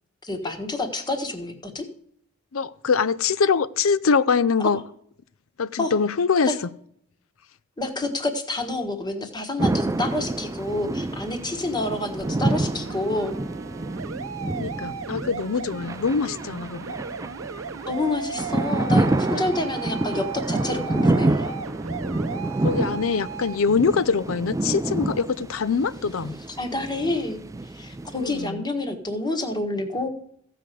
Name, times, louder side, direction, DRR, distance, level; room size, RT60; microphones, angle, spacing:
voice 1, 0.2-1.8 5.8-5.9 6.5-6.6 7.8-13.4 17.9-21.5 26.6-27.4 27.7-30.1, left 2 dB, 20° left, 1.5 m, -28 dB
voice 2, 2.5-4.8 5.6-6.5 14.6-16.9 22.6-26.4 28.2-28.7, left 5 dB, 85° left, 0.6 m, -23 dB
sound 1, 9.6-28.4, right 2 dB, 15° right, 0.4 m, -28 dB
sound 2, 12.2-23.6, right 5 dB, 80° right, 0.6 m, -36 dB
15.0 x 5.0 x 7.6 m
head